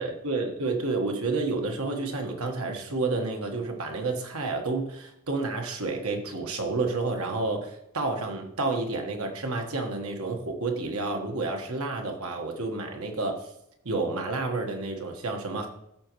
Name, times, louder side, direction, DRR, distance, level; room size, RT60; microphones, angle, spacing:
voice 1, 0.0-13.4 13.8-15.7, right 3 dB, 80° right, 3 dB, 1.4 m, -30 dB
13.5 x 5.0 x 3.1 m, 0.79 s
head